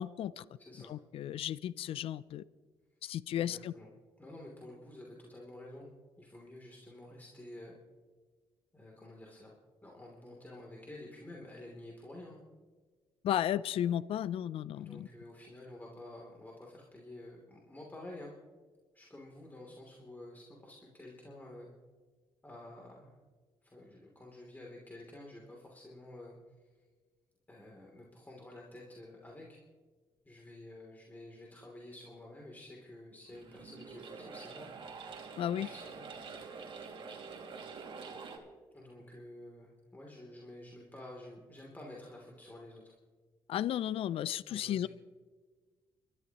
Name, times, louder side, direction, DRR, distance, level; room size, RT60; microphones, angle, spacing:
voice 1, 0.0-0.4 0.9-2.4 3.0-3.7 13.2-15.1 35.4-35.7 43.5-44.9, left 11 dB, 65° left, 19 dB, 0.4 m, -34 dB
voice 2, 0.6-0.9 3.0-3.9 4.2-5.9 6.2-7.8 8.7-9.5 9.8-12.4 14.8-18.3 18.9-21.7 22.4-23.1 23.6-26.4 26.8-26.9 27.5-29.6 30.2-34.7 35.5-36.0 38.7-42.9 44.5-44.9, left 1 dB, 15° left, -2 dB, 3.0 m, -50 dB
sound 1, 33.2-38.4, right 5 dB, 55° right, 2.3 m, -46 dB
29.5 x 13.0 x 3.0 m, 1.4 s
supercardioid pair, 70°, 10 cm